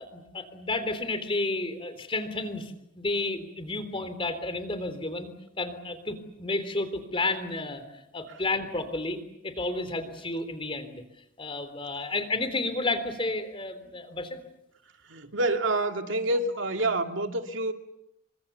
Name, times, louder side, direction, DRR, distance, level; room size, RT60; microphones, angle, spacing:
voice 1, 0.0-5.3 5.6-7.8 8.1-9.2 9.4-11.0 11.4-14.4, left 2 dB, 25° left, 3.6 m, -31 dB
voice 2, 15.0-17.7, right 2 dB, 70° right, 2.6 m, -27 dB
29.5 x 25.0 x 7.0 m
head